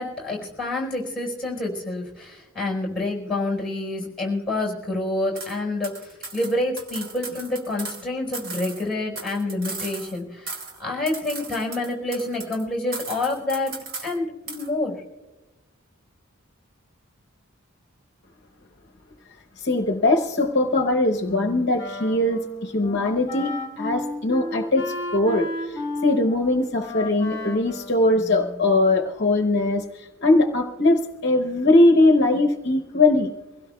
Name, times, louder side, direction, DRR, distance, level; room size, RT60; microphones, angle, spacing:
voice 1, 0.0-15.0, left 2 dB, 5° left, -1 dB, 4.5 m, -28 dB
sound 1, 5.4-5.6 5.8-8.0 8.3-10.2 10.5-10.8 11.1-12.6 12.9-14.2 14.5-14.7, right 4 dB, 45° right, 1.4 m, -36 dB
voice 2, 19.6-23.5 23.8-33.3, left 2 dB, 50° left, 3 dB, 0.8 m, -21 dB
Wind instrument woodwind instrument, 21.3-28.7, left 2 dB, 20° left, 2.1 m, -33 dB
24.0 x 16.5 x 2.3 m, 1.1 s
head